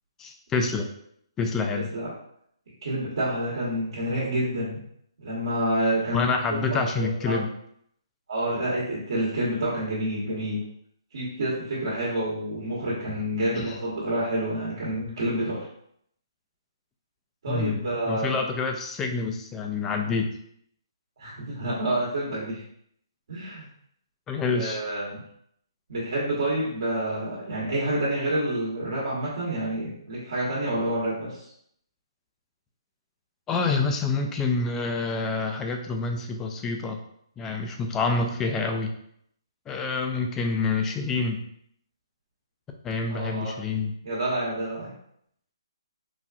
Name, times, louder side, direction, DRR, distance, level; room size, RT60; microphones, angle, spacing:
voice 1, 0.2-0.9 1.4-1.9 6.1-7.5 13.5-13.8 17.5-20.3 24.3-24.8 33.5-37.0 37.4-38.9 39.7-41.4 42.8-43.9, left 4 dB, 15° left, 4 dB, 0.3 m, -27 dB
voice 2, 2.8-4.8 5.2-7.3 8.3-10.6 11.1-15.7 17.4-18.4 21.2-22.6 23.3-23.7 24.5-25.2 25.9-31.4 43.1-43.6 44.0-44.9, right 1 dB, 60° right, -7 dB, 1.1 m, -28 dB
3.9 x 2.3 x 2.3 m, 0.70 s
hypercardioid pair, 145°, 3 cm